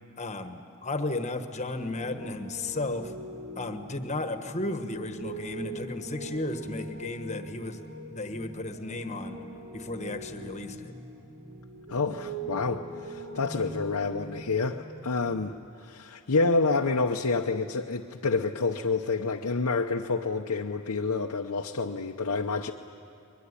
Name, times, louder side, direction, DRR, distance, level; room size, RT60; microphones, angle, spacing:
voice 1, 0.2-3.1 3.6-7.8 8.1-9.4 9.7-10.9, left 2 dB, 30° left, 7 dB, 1.4 m, -34 dB
Piano, 1.7-15.4, right 1 dB, 75° right, 7.9 m, -42 dB
voice 2, 11.9-15.5 15.8-22.7, left 3 dB, 90° left, 2 dB, 0.9 m, -28 dB
22.5 x 22.0 x 9.9 m, 2.8 s
head